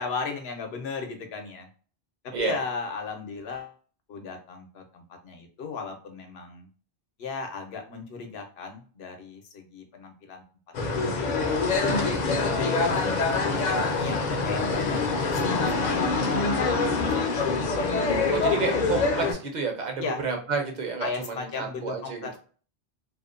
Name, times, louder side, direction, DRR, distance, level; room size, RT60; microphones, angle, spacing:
voice 1, 0.0-1.7 2.2-3.8 4.1-6.7 7.2-10.4 10.8-11.5 12.3-18.9 20.0-20.2 21.0-22.4, left 4 dB, 75° left, 4 dB, 0.9 m, -36 dB
sound 1, 10.7-19.3, left 3 dB, 55° left, 0.6 m, -25 dB
voice 2, 18.3-22.3, right 5 dB, 50° right, 3 dB, 0.7 m, -30 dB
2.6 x 2.1 x 2.4 m, 0.41 s
omnidirectional pair, 1.1 m